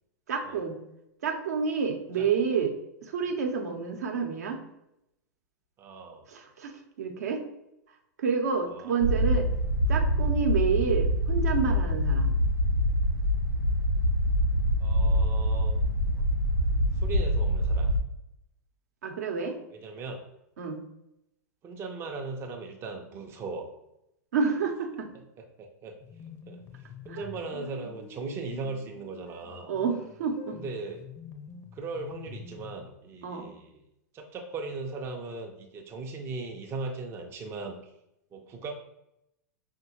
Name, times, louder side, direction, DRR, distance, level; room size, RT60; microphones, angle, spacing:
voice 1, 0.3-0.8 1.2-2.7 3.0-4.6 6.3-7.4 8.2-9.5 9.9-12.3 19.0-19.6 20.6-20.8 24.3-25.1 27.1-27.2 29.7-30.6 33.2-33.5, right 6 dB, 65° right, 3 dB, 0.7 m, -29 dB
voice 2, 2.2-2.5 3.2-3.3 5.8-6.2 8.7-9.0 14.8-15.9 16.9-17.9 19.7-20.2 21.6-23.7 25.4-26.0 26.5-26.6 27.1-29.7 30.6-31.0 31.7-33.8 34.1-37.9 38.3-38.7, right 3 dB, 25° right, 2 dB, 0.5 m, -38 dB
sound 1, 9.0-18.0, equal, 90° left, 0.4 m, -25 dB
sound 2, 26.0-32.9, left 5 dB, 25° left, 0.5 m, -46 dB
5.4 x 2.1 x 2.9 m, 0.83 s
figure-of-eight pair, 95°, 10 cm